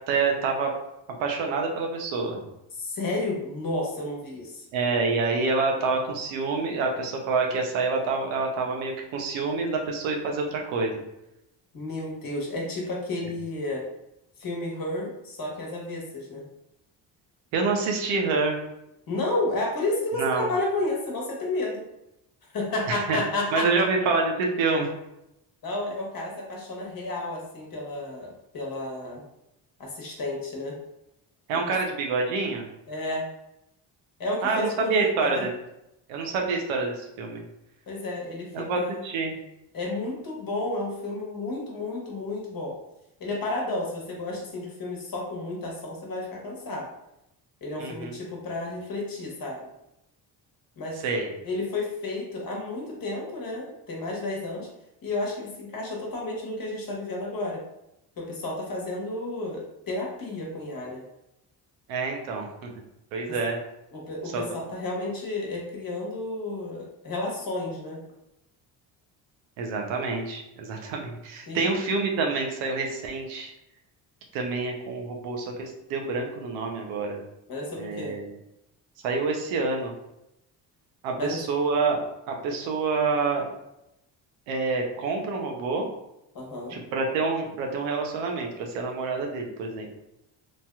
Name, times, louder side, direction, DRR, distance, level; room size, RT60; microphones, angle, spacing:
voice 1, 0.1-0.7 1.2-2.4 4.7-11.0 17.5-18.6 20.2-20.5 22.9-23.2 23.5-24.9 31.5-32.7 34.4-35.5 36.1-37.4 38.5-39.4 47.8-48.2 51.0-51.3 61.9-62.7 63.1-63.6 64.3-64.4 69.6-73.5 74.3-77.2 77.8-78.3 79.0-79.9 81.0-82.0 82.3-83.5 84.5-85.9 86.7-89.9, right 4 dB, 85° right, 2 dB, 0.7 m, -27 dB
voice 2, 2.8-4.6 11.7-13.8 14.4-16.4 19.1-21.8 22.5-23.7 25.6-29.2 29.8-30.8 32.9-33.2 34.2-35.5 37.9-39.0 39.7-42.8 43.2-46.9 47.6-49.6 50.8-51.0 51.4-54.7 55.0-57.6 58.2-61.0 63.9-68.0 71.5-71.7 77.5-78.2 81.2-81.4 86.3-86.8, left 2 dB, 45° left, -2 dB, 1.1 m, -31 dB
3.1 x 2.7 x 2.3 m, 0.87 s
supercardioid pair, 65°, 46 cm